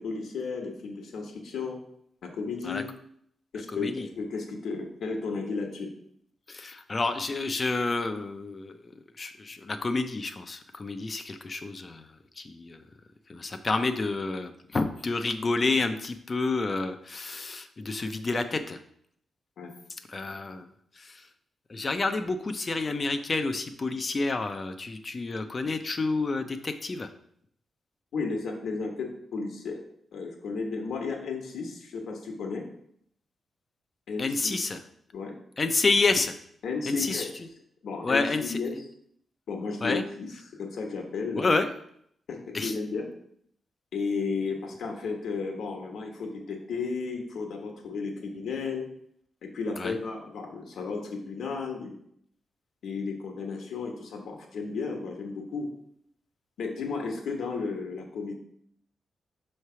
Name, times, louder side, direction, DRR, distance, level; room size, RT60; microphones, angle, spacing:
voice 1, 0.0-1.8 2.2-2.9 3.5-3.9 4.2-5.9 19.6-19.7 28.1-29.8 30.1-32.6 34.1-34.6 35.1-35.3 36.6-37.3 37.8-38.7 39.5-40.3 40.6-41.5 42.3-43.0 43.9-48.8 49.5-51.9 52.8-55.7 56.6-58.4, left 4 dB, 85° left, 1 dB, 1.2 m, -33 dB
voice 2, 3.7-4.1 6.5-8.9 9.2-12.1 12.4-12.8 13.3-18.8 20.1-20.7 21.0-21.2 21.7-27.1 34.2-34.8 35.6-36.3 36.9-37.3 38.0-38.6 39.8-40.0 41.4-41.7 42.5-42.7 49.8-50.0, left 3 dB, 30° left, 7 dB, 0.5 m, -29 dB
5.8 x 3.2 x 5.5 m, 0.68 s
wide cardioid pair, 140°, 0 cm